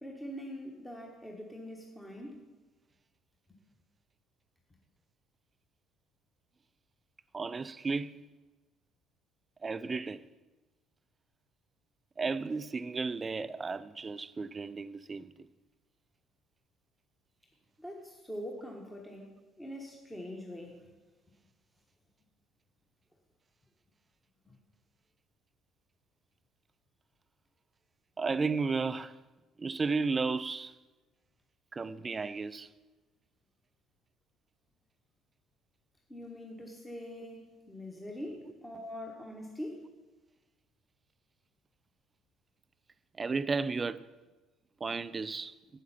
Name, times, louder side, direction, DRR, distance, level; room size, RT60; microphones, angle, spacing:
voice 1, 0.0-2.4 17.8-19.3 19.6-20.8 24.5-24.6 36.1-39.8, equal, 10° left, 1.3 m, -43 dB
voice 2, 7.3-8.2 9.6-10.2 12.2-15.3 28.2-29.2 29.6-30.7 31.7-32.7 43.2-44.1 44.8-45.5, right 4 dB, 25° right, 0.3 m, -33 dB
8.2 x 8.0 x 5.7 m
figure-of-eight pair, 55°, 0 cm